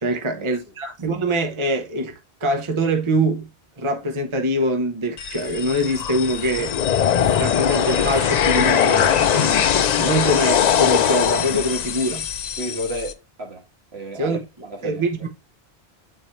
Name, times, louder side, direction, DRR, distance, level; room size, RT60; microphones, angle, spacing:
voice 1, 0.0-2.1 2.4-3.5 3.8-6.7 7.4-12.3 14.1-14.4 14.8-15.3, right 1 dB, 30° right, 0.9 m, -23 dB
sound 1, 5.2-13.1, left 8 dB, 55° left, 0.5 m, -21 dB
voice 2, 12.6-13.6 13.9-15.3, equal, 75° right, 1.8 m, -33 dB
8.1 x 4.5 x 3.1 m
omnidirectional pair, 1.1 m